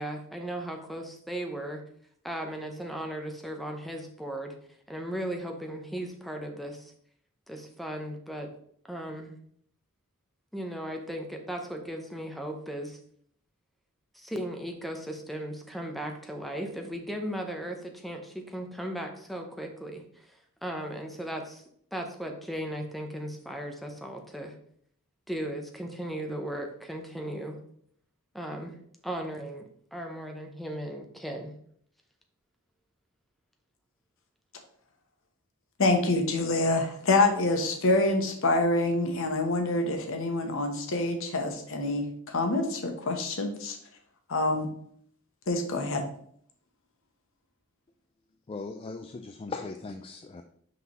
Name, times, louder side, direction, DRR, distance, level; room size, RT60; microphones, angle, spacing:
voice 1, 0.0-1.8 2.2-4.5 4.9-6.9 7.5-8.5 8.9-9.3 10.5-13.0 14.1-20.3 20.6-21.6 21.9-24.5 25.3-27.6 28.3-28.7 29.0-31.5, right 1 dB, ahead, 3 dB, 0.7 m, -36 dB
voice 2, 35.8-43.8 44.3-44.7 45.5-46.1, left 2 dB, 65° left, 4 dB, 1.0 m, -26 dB
voice 3, 48.5-50.4, left 3 dB, 25° left, 6 dB, 0.3 m, -38 dB
5.8 x 5.4 x 3.1 m, 0.64 s
head